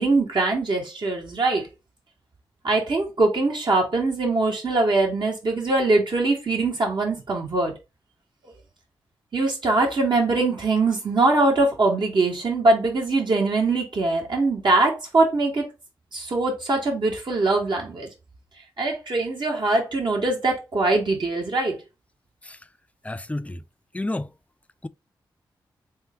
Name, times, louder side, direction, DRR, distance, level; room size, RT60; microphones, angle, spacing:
voice 1, 0.0-1.7 2.6-7.7 9.3-15.7 16.1-18.1 18.8-21.8, right 2 dB, 55° right, 2.0 m, -22 dB
voice 2, 23.1-23.6 23.9-24.3, left 2 dB, 15° left, 0.4 m, -29 dB
3.5 x 2.7 x 4.4 m
supercardioid pair, 40°, 9 cm